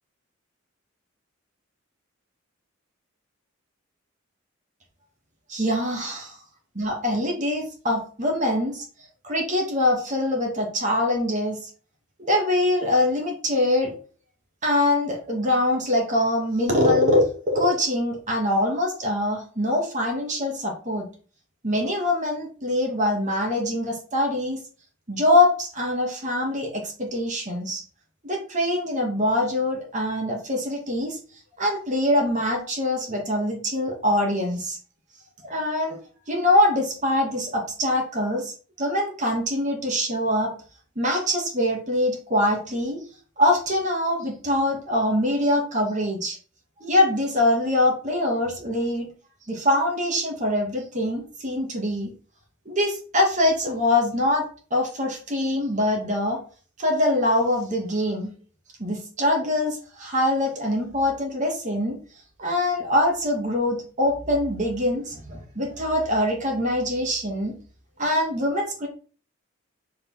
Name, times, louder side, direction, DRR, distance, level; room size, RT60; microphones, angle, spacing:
voice 1, 5.5-6.4 6.7-8.8 9.2-11.7 12.2-13.9 14.6-21.1 21.6-24.6 25.1-27.8 28.2-31.2 31.6-34.8 35.4-36.0 36.3-40.5 41.0-43.0 43.4-46.4 46.8-49.1 49.5-52.1 52.7-56.4 56.8-58.3 58.8-62.0 62.4-67.5 68.0-68.9, left 1 dB, 35° right, 0 dB, 2.3 m, -23 dB
5.6 x 5.0 x 5.8 m, 0.39 s
head